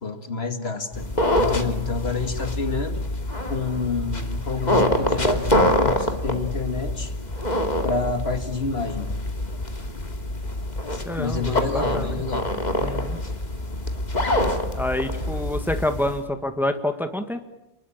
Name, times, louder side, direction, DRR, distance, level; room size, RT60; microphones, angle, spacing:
voice 1, 0.0-1.1 1.4-3.1 3.5-7.1 7.8-9.1 10.9-12.5 13.2-13.3, left 4 dB, 60° left, 9 dB, 2.2 m, -28 dB
sound 1, 0.9-16.2, left 1 dB, 40° left, 2.6 m, -25 dB
voice 2, 11.0-12.2 12.8-13.2 14.7-17.4, left 1 dB, ahead, 8 dB, 1.8 m, -27 dB
29.5 x 20.5 x 8.7 m, 0.88 s
omnidirectional pair, 1.2 m